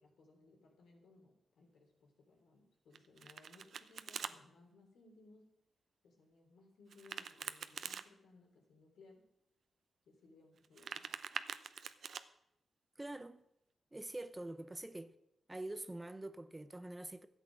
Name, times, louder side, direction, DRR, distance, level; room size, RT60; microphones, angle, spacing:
voice 1, 0.0-5.5 6.0-9.3 10.0-11.1, left 3 dB, 85° left, 3.2 m, -63 dB
Domestic sounds home sounds, 2.9-4.3 6.9-8.0 10.6-12.2, right 6 dB, 70° right, 0.6 m, -45 dB
voice 2, 13.0-13.4 13.9-15.1 15.5-17.3, right 1 dB, 15° right, 0.7 m, -45 dB
12.5 x 8.3 x 6.4 m
cardioid pair, 80°, 0 cm